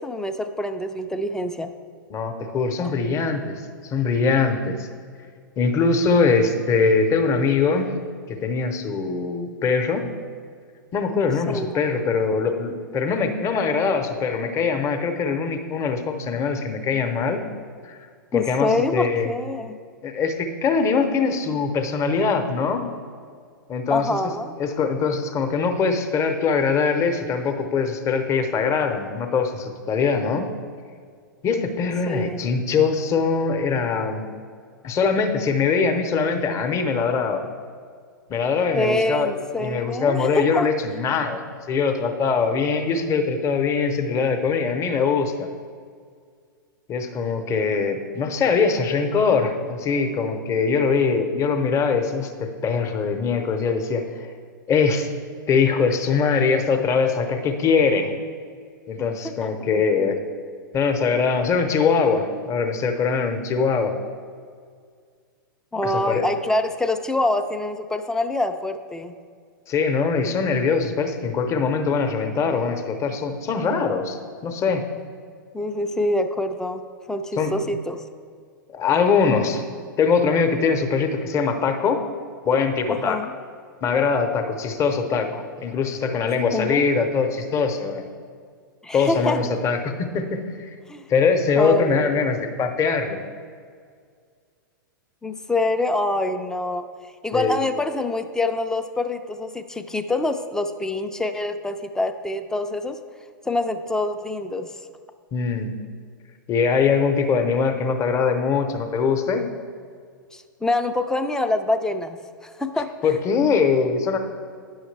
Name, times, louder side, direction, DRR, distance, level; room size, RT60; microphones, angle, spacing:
voice 1, 0.0-1.7 2.8-2.9 11.5-11.8 18.3-19.8 23.9-24.5 32.1-32.4 38.8-40.7 59.2-59.7 65.7-69.1 75.5-76.8 77.1-78.0 83.0-83.3 86.5-86.9 88.8-89.4 90.9-91.0 91.6-92.3 95.2-96.8 97.2-103.0 103.4-104.7 110.3-113.1, left 2 dB, 5° left, 8 dB, 0.4 m, -25 dB
voice 2, 2.1-3.5 3.8-4.9 5.6-7.9 8.3-10.1 10.9-17.4 17.8-18.0 18.3-19.3 20.0-22.9 23.7-24.2 24.6-30.5 31.4-34.3 34.8-37.4 38.3-39.3 39.6-41.4 41.7-45.5 46.9-54.3 54.7-55.1 55.5-58.1 58.9-60.2 60.7-63.9 65.8-66.3 69.7-74.8 77.4-77.6 78.7-79.6 80.0-82.0 82.4-83.2 83.8-88.1 88.9-90.7 91.1-93.2 97.3-97.6 105.3-105.7 106.5-109.5 113.0-114.2, left 5 dB, 25° left, 6 dB, 0.8 m, -22 dB
9.7 x 6.3 x 3.3 m, 2.1 s
figure-of-eight pair, 105°, 11 cm